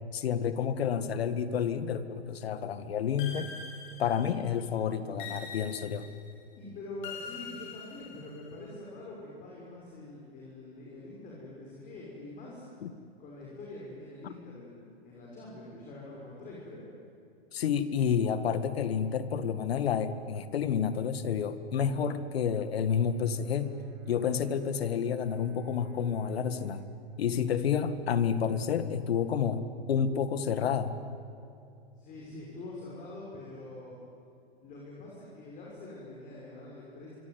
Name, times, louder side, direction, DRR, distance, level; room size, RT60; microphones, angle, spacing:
voice 1, 0.1-3.5 4.0-6.1 12.8-12.9 14.2-14.3 17.5-23.7 24.1-26.8 27.2-29.6 29.9-30.9, left 7 dB, 70° left, 12 dB, 2.0 m, -29 dB
sound 1, 3.2-4.5 5.2-6.3 7.0-8.5, left 6 dB, 50° left, 5.3 m, -44 dB
voice 2, 6.6-12.7 13.2-16.9 32.0-34.0 34.6-37.1, left 2 dB, 25° left, -3 dB, 6.2 m, -45 dB
Brass instrument, 22.8-27.0, right 7 dB, 35° right, 2.5 m, -56 dB
25.5 x 24.0 x 9.6 m, 2.6 s
hypercardioid pair, 140°, 32 cm